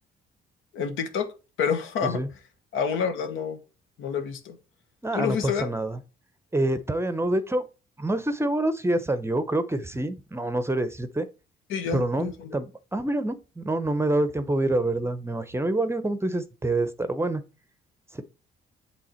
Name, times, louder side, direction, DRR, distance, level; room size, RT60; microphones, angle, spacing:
voice 1, 0.7-1.3 1.6-2.2 2.7-3.6 4.0-4.6 5.1-5.7 11.7-12.6, left 6 dB, 80° left, 1.1 m, -28 dB
voice 2, 5.0-6.0 6.5-7.6 8.0-11.3 11.9-17.4 18.1-18.2, right 1 dB, 15° right, 0.6 m, -26 dB
7.6 x 3.4 x 4.3 m
cardioid pair, 90°, 20 cm